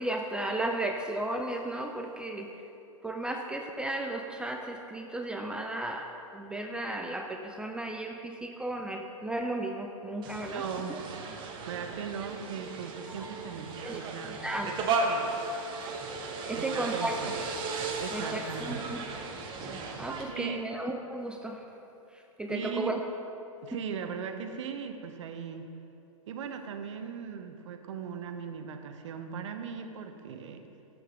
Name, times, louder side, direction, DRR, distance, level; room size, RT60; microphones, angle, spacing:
voice 1, 0.0-2.5 3.0-10.6 10.9-11.0 13.1-13.2 13.8-14.0 14.3-14.7 16.4-17.3 18.1-19.0 20.0-21.6 22.1-23.0, right 1 dB, 5° right, 2 dB, 0.4 m, -34 dB
sound 1, 10.2-20.2, right 3 dB, 25° right, 1.0 m, -35 dB
voice 2, 10.5-11.0 11.7-14.4 16.5-17.3 18.0-19.0 20.2-20.6 22.5-22.9 23.6-25.7 26.3-30.7, right 6 dB, 55° right, 6 dB, 0.9 m, -38 dB
11.0 x 7.8 x 3.8 m, 2.8 s
hypercardioid pair, 120°, 18 cm